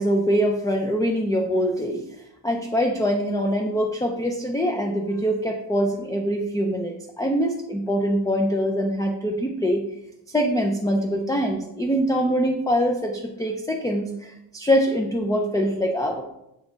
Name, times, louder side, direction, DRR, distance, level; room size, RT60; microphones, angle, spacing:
voice 1, 0.0-2.0 2.4-9.9 10.3-16.2, equal, 10° left, 2 dB, 0.4 m, -23 dB
6.3 x 3.5 x 5.0 m, 0.86 s
wide cardioid pair, 160°, 45 cm